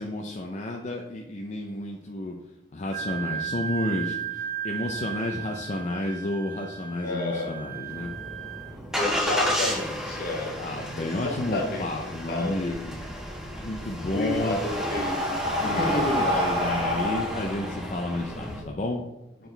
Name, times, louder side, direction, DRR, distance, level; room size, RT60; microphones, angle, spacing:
voice 1, 0.0-2.4 2.7-8.1 10.6-13.0 13.6-14.6 15.6-19.0, left 1 dB, 40° left, 1 dB, 0.5 m, -31 dB
Wind instrument woodwind instrument, 2.9-8.7, right 9 dB, 60° right, 2.0 m, -35 dB
voice 2, 7.0-7.5 8.9-10.6 11.0-11.8 12.3-12.7 14.1-15.4 15.6-16.2, left 2 dB, 60° left, 1 dB, 1.2 m, -30 dB
Engine starting, 7.9-18.6, equal, 5° right, 1.3 m, -33 dB
Breathing, 13.9-18.5, equal, 30° right, 1.9 m, -29 dB
7.5 x 4.6 x 3.3 m, 0.96 s
head